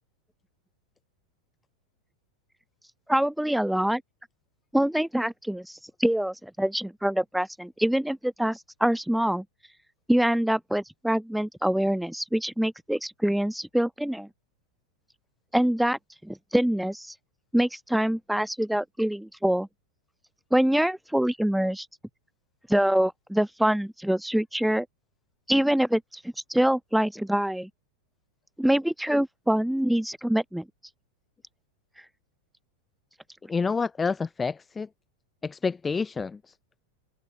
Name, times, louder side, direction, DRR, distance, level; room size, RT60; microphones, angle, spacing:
voice 1, 3.1-4.0 4.7-9.4 10.1-14.3 15.5-17.1 17.5-19.7 20.5-21.9 22.7-24.9 25.5-27.7 28.6-30.7, right 1 dB, ahead, 1.3 m, -25 dB
voice 2, 33.5-34.9 35.4-36.4, left 5 dB, 15° left, 0.5 m, -28 dB
figure-of-eight pair, 90°, 0 cm